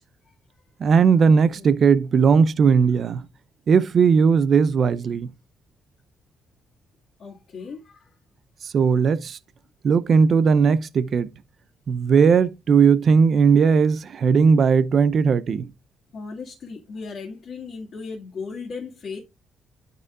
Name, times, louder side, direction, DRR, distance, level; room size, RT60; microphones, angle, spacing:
voice 1, 0.8-3.3 3.7-5.3 8.7-9.4 9.8-11.3 11.9-15.7, right 6 dB, 55° right, 0.6 m, -18 dB
voice 2, 7.2-8.1 16.1-19.2, left 4 dB, 55° left, 2.0 m, -36 dB
11.0 x 4.9 x 2.4 m
cardioid pair, 90°, 0 cm